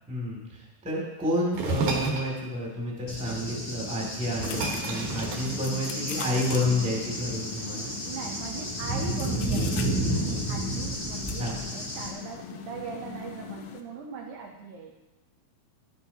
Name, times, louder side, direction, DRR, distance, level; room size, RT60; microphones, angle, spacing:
voice 1, 0.1-7.9 11.4-11.6, left 1 dB, 5° right, -4 dB, 1.4 m, -30 dB
sound 1, 1.5-2.3 3.7-3.8 4.1-6.2, right 2 dB, 65° right, 2.6 m, -31 dB
Cricket / Thunder, 3.1-12.1, right 1 dB, 15° left, 1.3 m, -32 dB
sound 2, 4.4-13.8, left 8 dB, 90° left, 2.8 m, -40 dB
voice 2, 8.0-15.0, right 6 dB, 80° right, 0 dB, 1.7 m, -40 dB
11.0 x 10.5 x 2.9 m, 1.1 s
omnidirectional pair, 4.5 m